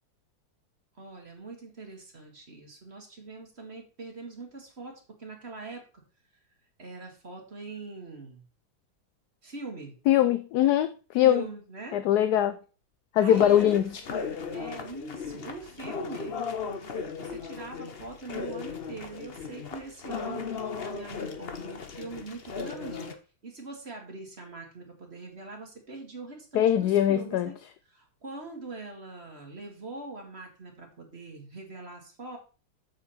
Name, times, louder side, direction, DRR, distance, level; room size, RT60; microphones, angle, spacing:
voice 1, 1.0-5.9 6.8-8.4 9.4-9.9 11.2-12.0 13.2-13.8 14.1-14.2 14.5-16.3 17.2-23.1 23.4-27.6 27.9-32.4, right 3 dB, 35° right, 2.2 m, -42 dB
voice 2, 10.1-11.4 11.9-12.6 13.1-13.9 26.5-27.5, left 11 dB, 70° left, 1.0 m, -22 dB
sound 1, 13.3-23.1, left 5 dB, 40° left, 0.9 m, -37 dB
7.6 x 7.2 x 4.3 m
omnidirectional pair, 2.0 m